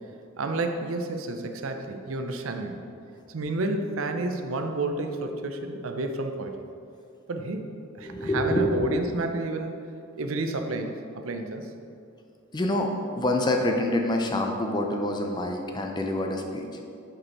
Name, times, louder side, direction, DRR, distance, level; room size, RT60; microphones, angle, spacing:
voice 1, 0.4-2.8 3.3-6.5 7.3-7.7 8.0-9.8 10.2-11.7, right 2 dB, 70° right, 5 dB, 0.6 m, -30 dB
voice 2, 8.0-8.9 12.5-16.7, left 1 dB, 20° left, 3 dB, 0.5 m, -26 dB
6.2 x 5.3 x 4.2 m, 2.5 s
head